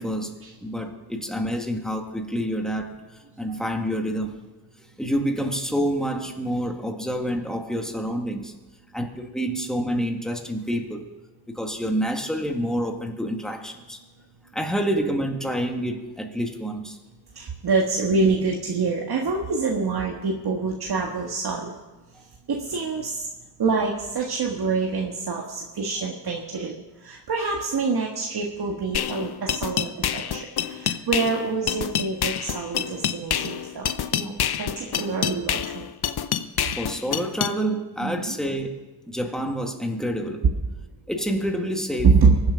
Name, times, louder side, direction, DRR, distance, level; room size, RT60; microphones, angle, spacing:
voice 1, 0.0-0.3 0.6-3.0 3.4-4.4 5.0-8.5 8.9-11.1 11.6-14.0 14.5-17.0 36.8-38.7 39.1-40.4 41.1-42.1, equal, ahead, 3 dB, 1.9 m, -27 dB
voice 2, 17.3-21.7 22.5-23.3 23.6-26.7 27.0-35.9 38.0-38.4 42.0-42.3, right 4 dB, 70° right, -1 dB, 1.7 m, -25 dB
sound 1, 28.9-37.5, left 9 dB, 70° left, 0.8 m, -27 dB
23.0 x 8.1 x 5.2 m, 1.2 s
wide cardioid pair, 90°, 39 cm